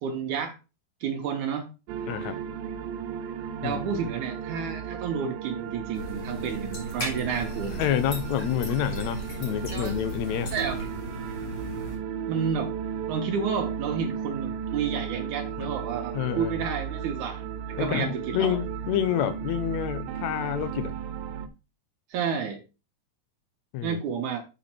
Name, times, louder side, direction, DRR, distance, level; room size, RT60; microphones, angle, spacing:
voice 1, 0.0-0.6 1.0-1.7 2.2-2.3 3.6-7.9 9.7-10.0 10.5-10.8 12.3-12.7 13.1-17.5 17.8-18.6 22.1-22.6 23.8-24.4, right 6 dB, 70° right, 2.1 m, -30 dB
sound 1, 1.9-21.5, right 8 dB, 90° right, 2.5 m, -35 dB
voice 2, 2.1-2.4 3.6-4.0 7.8-10.5 15.6-15.7 16.1-16.6 17.8-21.0 23.7-24.0, left 11 dB, 75° left, 1.7 m, -28 dB
sound 2, 5.9-12.0, equal, 40° left, 4.1 m, -36 dB
7.0 x 5.7 x 4.4 m
omnidirectional pair, 3.9 m